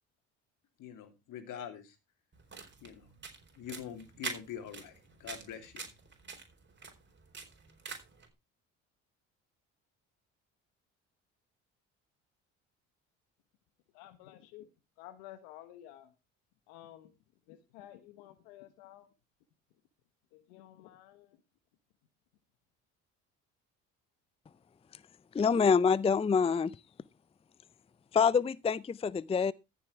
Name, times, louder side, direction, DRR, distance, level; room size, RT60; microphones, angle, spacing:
voice 1, 0.8-2.0 2.8-3.1 3.5-5.9, left 9 dB, 65° left, 2.8 m, -44 dB
sound 1, 2.3-8.3, right 4 dB, 35° right, 4.3 m, -46 dB
voice 2, 13.9-14.7 15.0-16.1 16.7-17.1 17.5-19.1 20.3-21.4, left 13 dB, 85° left, 1.3 m, -52 dB
voice 3, 25.3-26.8 28.1-29.5, left 6 dB, 20° left, 0.5 m, -26 dB
14.0 x 6.9 x 4.6 m
hypercardioid pair, 65°, 33 cm